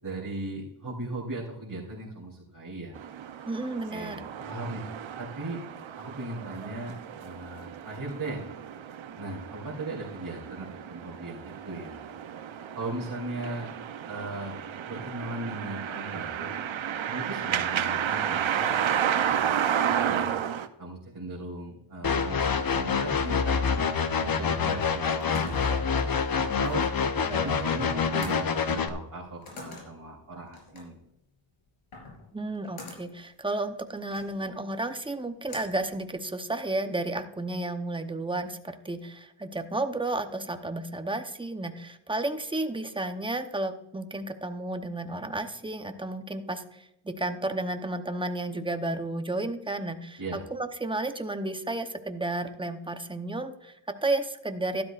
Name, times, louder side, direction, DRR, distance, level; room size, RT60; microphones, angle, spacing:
voice 1, 0.0-3.0 3.6-4.8 5.2-5.6 6.0-8.4 9.1-12.1 12.7-13.7 14.1-14.6 14.8-16.5 17.1-20.3 20.8-23.8 24.2-26.9 27.3-31.0 50.2-50.4, right 2 dB, 45° right, -7 dB, 3.4 m, -38 dB
sound 1, 3.0-20.7, right 9 dB, 65° right, 0.8 m, -32 dB
voice 2, 3.5-4.2 27.2-27.5 32.3-54.8, right 2 dB, 10° right, 7 dB, 0.8 m, -32 dB
sound 2, 22.0-28.9, left 6 dB, 45° left, 0.9 m, -26 dB
sound 3, 25.0-36.7, left 3 dB, 75° left, 4.2 m, -48 dB
12.5 x 12.0 x 2.5 m, 0.85 s
wide cardioid pair, 90°, 50 cm